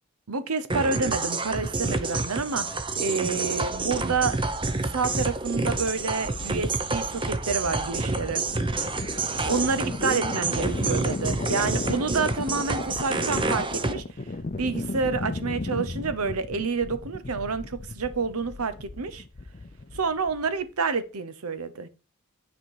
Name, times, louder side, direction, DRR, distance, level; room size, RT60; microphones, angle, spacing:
voice 1, 0.3-2.7 3.0-4.4 4.7-8.4 9.5-14.0 14.6-19.2 19.9-21.9, right 4 dB, 85° right, 0.9 m, -28 dB
sound 1, 0.7-13.9, right 3 dB, 25° right, 0.7 m, -28 dB
sound 2, 3.7-20.6, left 2 dB, 35° left, 0.5 m, -36 dB
9.7 x 4.4 x 4.7 m
head